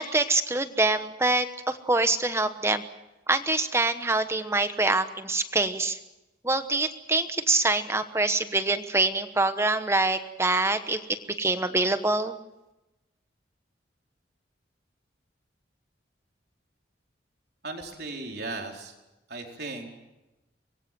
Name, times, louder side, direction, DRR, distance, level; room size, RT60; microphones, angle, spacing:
voice 1, 0.0-2.8 3.3-6.0 6.4-12.4, right 2 dB, 15° right, 9 dB, 1.1 m, -25 dB
voice 2, 17.6-19.0 19.3-19.9, right 3 dB, 60° right, 2 dB, 4.4 m, -36 dB
25.0 x 22.5 x 7.7 m, 0.99 s
head